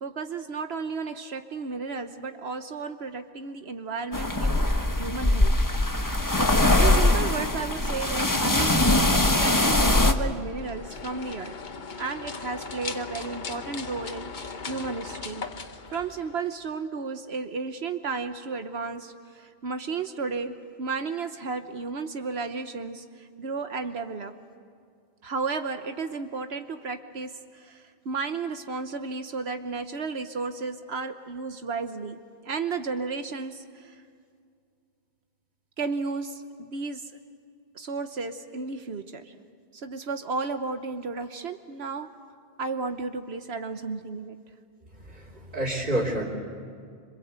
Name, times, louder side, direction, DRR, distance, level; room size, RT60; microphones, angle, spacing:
voice 1, 0.0-4.6 5.0-5.5 6.8-11.5 12.0-15.4 15.9-24.3 25.2-32.2 32.4-34.0 35.8-37.1 37.7-39.3 39.7-42.1 42.6-44.4, right 4 dB, 75° right, 8 dB, 1.3 m, -33 dB
sound 1, 4.1-10.1, left 1 dB, 20° left, 1.3 m, -22 dB
sound 2, 10.5-16.6, left 5 dB, 45° left, 1.1 m, -38 dB
voice 2, 45.1-46.2, right 1 dB, 50° right, -6 dB, 3.6 m, -28 dB
27.0 x 26.0 x 8.1 m, 2.3 s
omnidirectional pair, 1.1 m